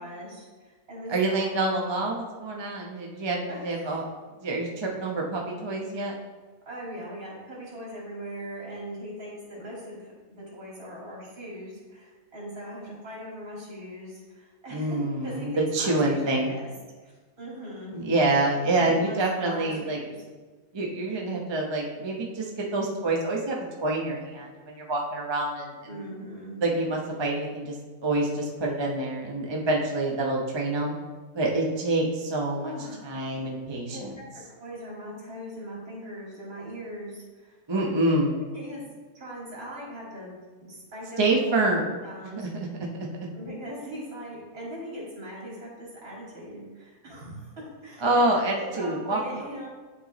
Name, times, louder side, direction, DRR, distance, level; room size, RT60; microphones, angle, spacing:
voice 1, 0.0-1.7 3.4-3.9 6.7-16.7 17.0-18.1 18.8-20.2 25.9-26.6 32.6-33.1 33.9-37.9 38.3-38.8 39.1-41.7 42.0-42.5 43.3-49.7, equal, 65° right, -5 dB, 2.8 m, -40 dB
voice 2, 1.1-4.0 4.4-6.1 14.7-16.5 17.9-20.0 20.7-26.0 26.6-27.8 28.0-30.9 31.3-32.7 33.0-34.1 37.7-38.4 41.2-41.8 42.4-42.5 48.0-49.4, right 2 dB, 25° right, -1 dB, 0.7 m, -27 dB
11.0 x 4.5 x 3.0 m, 1.3 s
omnidirectional pair, 1.6 m